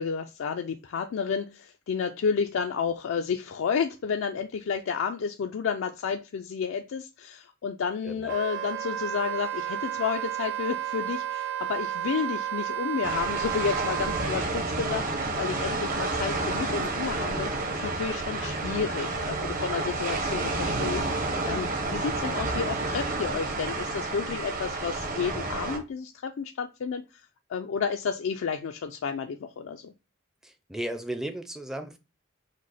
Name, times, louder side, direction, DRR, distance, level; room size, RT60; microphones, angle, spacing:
voice 1, 0.0-27.2 27.5-29.9, left 6 dB, 80° left, 5 dB, 0.4 m, -31 dB
voice 2, 8.0-8.3 15.6-15.9 30.4-32.0, right 1 dB, ahead, 6 dB, 0.4 m, -36 dB
Wind instrument woodwind instrument, 8.3-14.3, right 11 dB, 70° right, 0.5 m, -32 dB
sound 1, 13.0-25.8, right 2 dB, 45° right, 0.8 m, -30 dB
5.1 x 2.1 x 4.0 m, 0.29 s
head